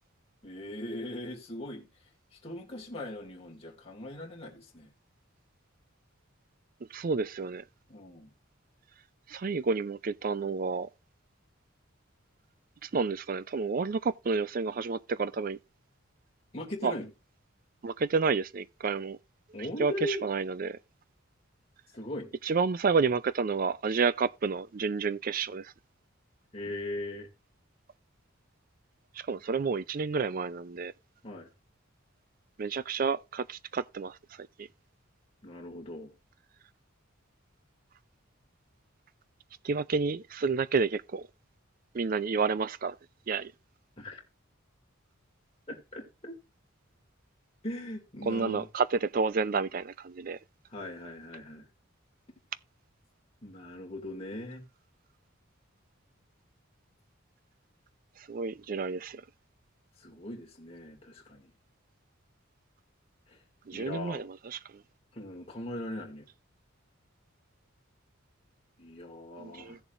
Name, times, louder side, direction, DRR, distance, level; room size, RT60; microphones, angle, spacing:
voice 1, 0.4-1.9 2.3-4.9 7.9-8.3 16.5-17.1 19.5-20.2 21.9-22.3 26.5-27.3 31.2-31.5 35.4-36.1 44.0-44.2 45.7-46.4 47.6-48.7 50.7-51.7 53.4-54.6 60.0-61.5 63.3-63.4 63.7-64.3 65.1-66.2 68.8-69.8, left 1 dB, 30° left, 2.3 m, -39 dB
voice 2, 6.9-7.6 9.3-10.9 12.8-15.6 16.8-16.9 17.8-19.2 19.8-19.9 20.2-20.8 22.5-25.7 29.2-30.9 32.6-34.2 34.6-34.7 39.6-41.3 41.9-43.0 43.3-43.5 48.3-50.4 58.3-59.2 63.7-64.3 69.4-69.8, right 4 dB, 40° right, 0.4 m, -30 dB
16.5 x 7.0 x 2.5 m
head